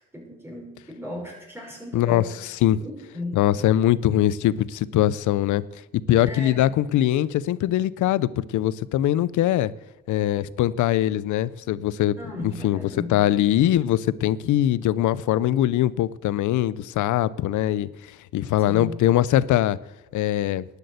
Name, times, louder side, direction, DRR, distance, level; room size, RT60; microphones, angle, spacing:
voice 1, 0.0-2.3 2.8-3.4 6.2-6.6 12.2-13.2 18.7-18.9, left 1 dB, 10° right, -2 dB, 5.8 m, -36 dB
voice 2, 1.9-2.8 3.3-5.6 5.9-9.7 10.1-12.2 12.4-12.8 13.1-17.9 18.3-19.8 20.1-20.6, left 13 dB, 80° left, 19 dB, 0.6 m, -22 dB
12.0 x 8.4 x 8.2 m, 1.0 s
cardioid pair, 90°, 30 cm